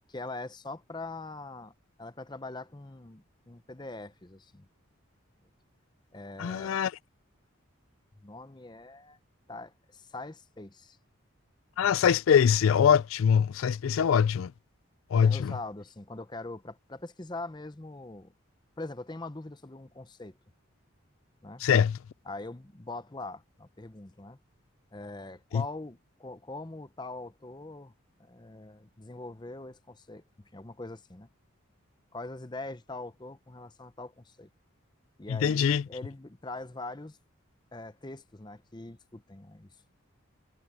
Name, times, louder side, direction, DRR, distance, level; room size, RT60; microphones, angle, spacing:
voice 1, 0.1-1.7 2.0-4.7 6.1-6.8 8.2-9.2 9.5-11.0 15.2-18.3 18.8-20.3 21.4-21.6 22.3-24.4 24.9-27.9 28.2-31.3 32.1-34.5 35.2-37.2 37.7-39.7, left 2 dB, 20° left, 0.7 m, -42 dB
voice 2, 6.4-6.9 11.8-14.5 15.1-15.5 21.6-22.0 25.5-25.6 35.3-35.8, left 7 dB, 75° left, 0.3 m, -23 dB
head